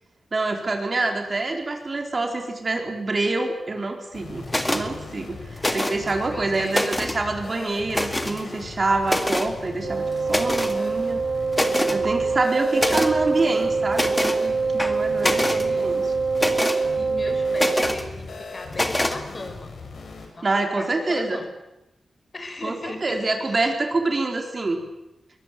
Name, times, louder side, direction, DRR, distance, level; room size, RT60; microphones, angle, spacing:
voice 1, 0.3-5.4 5.7-11.2 11.9-16.0 20.4-21.4 22.6-24.8, right 3 dB, 40° right, 4 dB, 4.2 m, -26 dB
sound 1, 4.1-20.3, left 4 dB, 75° left, 5.6 m, -39 dB
sound 2, 4.5-4.8 5.6-6.1 6.5-7.2 7.9-8.4 9.0-9.5 10.3-10.8 11.2-11.3 11.5-12.0 12.8-13.1 13.9-14.4 14.8-15.6 16.3-16.8 17.5-18.0 18.7-19.2, left 1 dB, 10° left, 2.1 m, -25 dB
voice 2, 6.2-6.9 12.7-13.1 15.2-15.9 16.9-19.8 20.3-21.4 22.3-23.7, left 2 dB, 40° left, 7 dB, 4.3 m, -38 dB
Wind instrument woodwind instrument, 9.8-18.0, right 4 dB, 75° right, 3.6 m, -24 dB
23.0 x 19.5 x 9.2 m, 0.94 s
wide cardioid pair, 95°, 0 cm